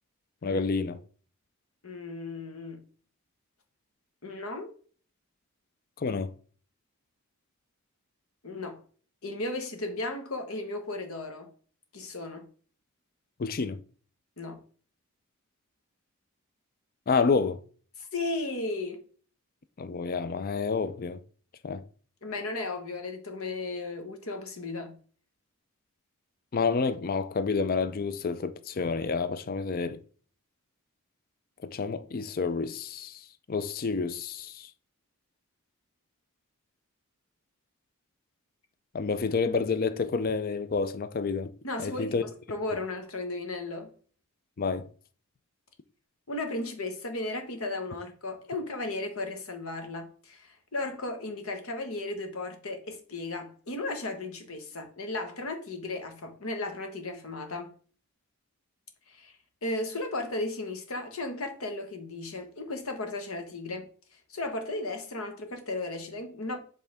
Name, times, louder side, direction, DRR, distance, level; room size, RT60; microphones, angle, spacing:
voice 1, 0.4-1.0 6.0-6.3 13.4-13.8 17.1-17.6 19.8-21.2 21.6-21.8 26.5-30.0 31.6-33.2 33.5-34.7 38.9-41.5 41.8-42.2 44.6-44.9, left 4 dB, 40° left, 0.4 m, -29 dB
voice 2, 1.8-2.8 4.2-4.7 8.4-8.8 9.2-11.5 11.9-12.4 14.4-14.6 18.0-19.0 22.2-25.0 41.6-43.9 46.3-57.7 59.1-59.3 59.6-63.9 64.3-66.6, left 2 dB, 75° left, 1.3 m, -35 dB
7.9 x 3.6 x 3.4 m
head